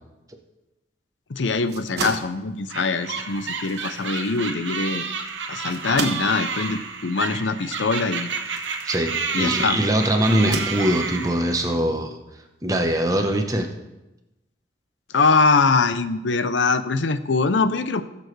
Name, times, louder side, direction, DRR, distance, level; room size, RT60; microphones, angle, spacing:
voice 1, 1.3-5.0 5.5-8.3 9.3-9.8 15.1-18.0, left 4 dB, 85° left, 11 dB, 0.6 m, -22 dB
sound 1, 1.5-9.6 10.2-11.3, right 3 dB, 60° right, 1.2 m, -35 dB
sound 2, 2.7-11.8, right 5 dB, 90° right, 1.0 m, -30 dB
voice 2, 8.8-12.2 12.6-13.7, right 1 dB, 20° right, 4 dB, 0.9 m, -22 dB
19.0 x 6.9 x 3.3 m, 1.0 s
head